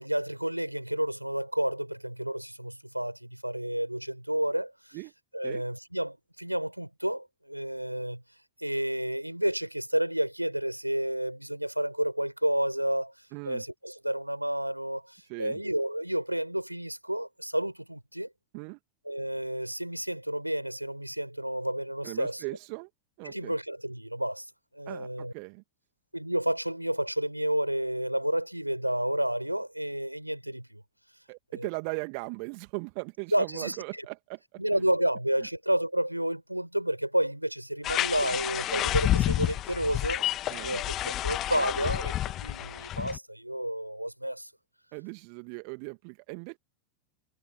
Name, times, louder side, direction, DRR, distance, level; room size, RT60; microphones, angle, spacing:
voice 1, 0.0-5.0 5.3-8.2 8.6-13.1 13.4-18.3 19.1-22.4 23.2-25.3 26.1-30.8 31.6-31.7 33.3-33.8 34.6-40.2 40.6-44.5, right 1 dB, 90° right, 7.0 m, -30 dB
voice 2, 13.3-13.6 15.3-15.6 18.5-18.8 22.0-22.9 23.2-23.5 24.9-25.6 31.3-34.6 40.5-40.8 44.9-46.6, right 40 dB or more, 45° right, 2.0 m, -38 dB
sound 1, 37.8-43.2, left 13 dB, 35° left, 1.5 m, -29 dB
figure-of-eight pair, 90°, 0 cm